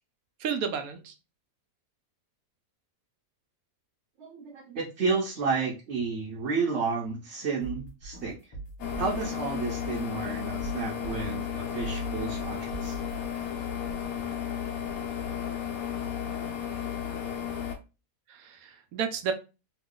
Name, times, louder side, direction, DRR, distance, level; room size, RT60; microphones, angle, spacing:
voice 1, 0.4-1.1 18.3-19.3, right 6 dB, 80° right, 7 dB, 1.1 m, -32 dB
voice 2, 4.2-8.3 9.0-13.0, right 4 dB, 60° right, -3 dB, 1.0 m, -31 dB
sound 1, 7.3-9.4 9.8-11.5 11.8-13.9, right 3 dB, 25° left, 1.4 m, -41 dB
sound 2, 8.8-17.8, left 9 dB, 75° left, 1.1 m, -33 dB
3.0 x 2.3 x 3.7 m, 0.30 s
omnidirectional pair, 1.5 m